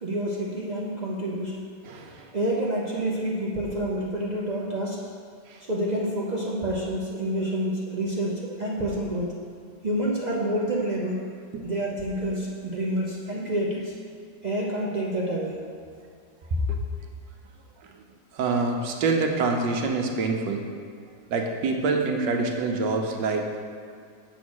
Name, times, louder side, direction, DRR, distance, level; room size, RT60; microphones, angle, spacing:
voice 1, 0.0-1.6 2.3-5.1 5.6-9.3 9.8-11.3 11.6-14.0 14.4-15.6, right 1 dB, 65° right, -4 dB, 0.4 m, -28 dB
voice 2, 1.8-2.3 5.5-5.6 11.4-11.6 17.8-18.0 18.3-20.7 21.3-23.6, right 3 dB, 85° right, 3 dB, 1.4 m, -26 dB
7.1 x 4.2 x 6.2 m, 2.3 s
omnidirectional pair, 1.9 m